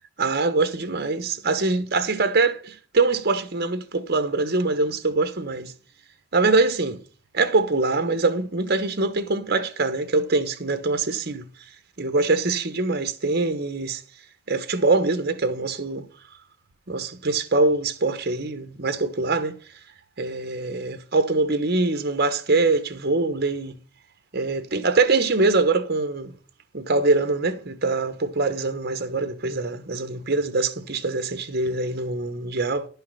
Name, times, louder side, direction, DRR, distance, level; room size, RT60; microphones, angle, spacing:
voice 1, 0.2-5.7 6.3-7.0 7.3-11.5 12.0-14.0 14.5-16.1 16.9-19.6 20.2-23.7 24.3-26.3 26.7-32.9, right 3 dB, 50° right, 1.0 m, -23 dB
11.0 x 5.7 x 5.6 m
head